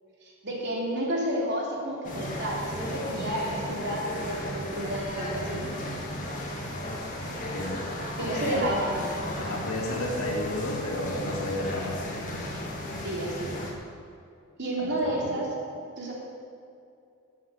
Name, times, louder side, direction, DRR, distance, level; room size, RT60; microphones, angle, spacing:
voice 1, 0.2-5.7 8.0-8.9 13.0-13.5 14.6-15.5 16.0-16.1, right 1 dB, 50° right, -3 dB, 3.2 m, -31 dB
sound 1, 2.0-13.7, left 1 dB, 35° left, 2.2 m, -35 dB
voice 2, 8.2-8.8 9.4-12.1 14.8-15.3, left 1 dB, 85° left, -2 dB, 3.3 m, -32 dB
13.0 x 8.4 x 7.9 m, 2.5 s
head